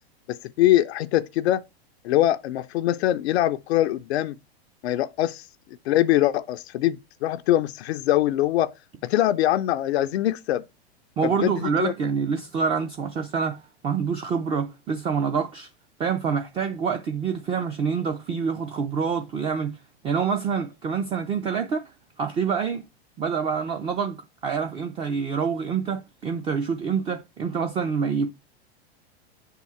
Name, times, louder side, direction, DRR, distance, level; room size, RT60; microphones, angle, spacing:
voice 1, 0.3-1.6 2.0-4.4 4.8-5.4 5.9-8.7 9.0-10.6 11.2-11.9, left 13 dB, 75° left, 0.5 m, -23 dB
voice 2, 11.2-15.7 16.0-19.8 20.0-21.9 22.2-22.8 23.2-28.3, right 6 dB, 15° right, 0.3 m, -26 dB
7.7 x 3.7 x 4.2 m
hypercardioid pair, 125°, 32 cm